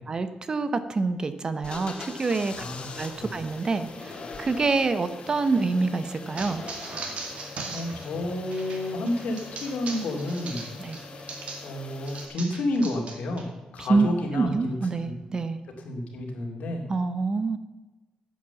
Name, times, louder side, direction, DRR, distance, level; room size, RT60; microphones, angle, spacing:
voice 1, 0.1-2.6 2.9-6.6 10.8-11.0 13.8-14.1 14.3-15.6 16.9-17.6, right 3 dB, 30° right, 11 dB, 0.8 m, -26 dB
sound 1, 1.6-12.3, left 3 dB, 45° left, 1.8 m, -42 dB
sound 2, 6.4-11.7 12.1-13.5, right 3 dB, 60° right, 2.2 m, -39 dB
voice 2, 7.7-10.6 11.6-13.5 13.7-14.8 15.0-15.4 15.8-16.8, left 1 dB, 80° left, 2 dB, 2.6 m, -30 dB
10.5 x 7.9 x 7.1 m, 1.2 s
wide cardioid pair, 135°, 2 cm